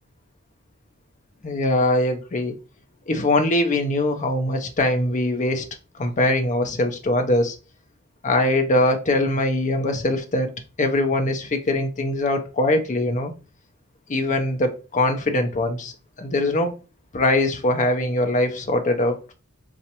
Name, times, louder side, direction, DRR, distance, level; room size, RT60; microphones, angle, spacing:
voice 1, 1.4-2.5 3.1-5.6 6.0-7.5 8.2-10.5 10.8-13.3 14.1-15.9 16.2-16.8 17.1-19.3, left 1 dB, 35° left, 0.6 m, -22 dB
4.1 x 2.4 x 2.8 m
head